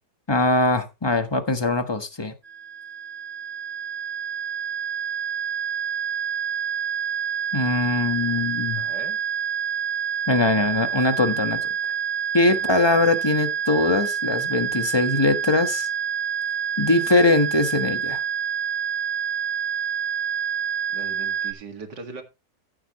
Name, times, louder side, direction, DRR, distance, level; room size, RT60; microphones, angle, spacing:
voice 1, 0.3-2.3 7.5-8.8 10.3-11.6 11.8-11.9 12.3-15.9 16.8-18.2, left 2 dB, 15° left, 1.2 m, -21 dB
sound 1, 2.4-21.5, right 8 dB, 40° right, 1.6 m, -28 dB
voice 2, 8.7-9.2 12.5-13.0 20.9-22.2, right 4 dB, 80° right, 2.7 m, -40 dB
14.5 x 7.8 x 3.1 m
omnidirectional pair, 1.8 m